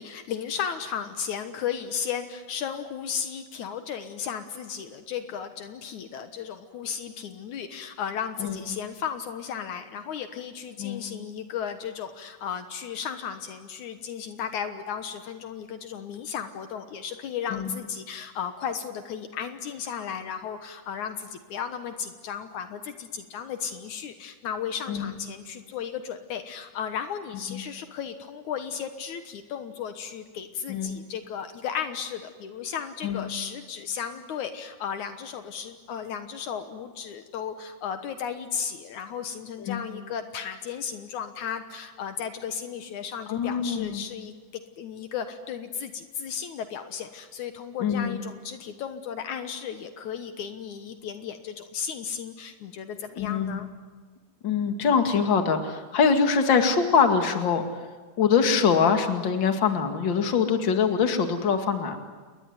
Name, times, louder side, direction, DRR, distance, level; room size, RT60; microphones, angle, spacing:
voice 1, 0.0-53.7, left 8 dB, 70° left, 8 dB, 2.6 m, -35 dB
voice 2, 43.3-44.1 47.8-48.2 53.2-53.7 54.4-57.6 58.2-62.0, left 6 dB, 40° left, 5 dB, 2.5 m, -23 dB
29.0 x 21.5 x 9.5 m, 1.4 s
omnidirectional pair, 3.6 m